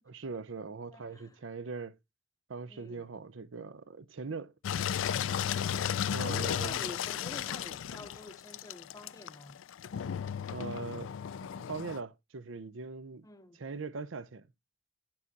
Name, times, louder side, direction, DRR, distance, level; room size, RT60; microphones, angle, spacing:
voice 1, 0.1-2.0 2.5-4.5 6.1-6.8 10.5-11.1 11.5-13.3 13.5-14.5, right 4 dB, 85° right, 0.6 m, -41 dB
voice 2, 0.9-1.4 2.7-3.1 5.5-9.5 13.2-13.6, left 2 dB, 20° left, 0.8 m, -48 dB
Engine, 4.6-12.0, left 9 dB, 85° left, 0.4 m, -34 dB
9.3 x 7.3 x 2.8 m
head